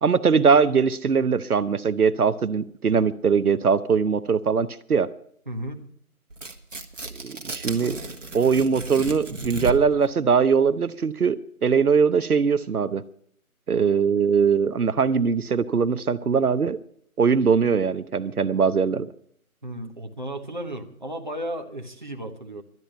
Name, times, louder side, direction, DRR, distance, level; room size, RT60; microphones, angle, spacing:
voice 1, 0.0-5.1 7.2-8.0 8.3-13.0 13.7-16.8 17.2-19.1, right 6 dB, 80° right, 14 dB, 0.8 m, -21 dB
voice 2, 5.5-5.8 7.8-8.0 9.3-9.4 19.6-22.6, right 1 dB, 30° right, 3 dB, 1.1 m, -34 dB
Tearing, 6.3-10.0, right 2 dB, 55° right, 1.5 m, -34 dB
12.0 x 9.2 x 9.1 m, 0.63 s
figure-of-eight pair, 175°, 44 cm